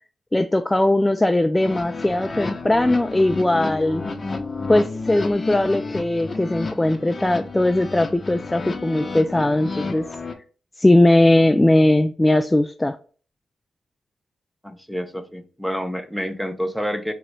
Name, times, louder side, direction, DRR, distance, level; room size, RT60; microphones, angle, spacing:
voice 1, 0.3-4.0 4.7-10.1 10.8-13.0, left 1 dB, 15° left, 0.3 m, -19 dB
sound 1, 1.6-10.3, left 3 dB, 40° left, 0.8 m, -31 dB
voice 2, 14.6-17.1, equal, ahead, 0.7 m, -28 dB
3.7 x 3.0 x 3.3 m
cardioid pair, 60°, 0 cm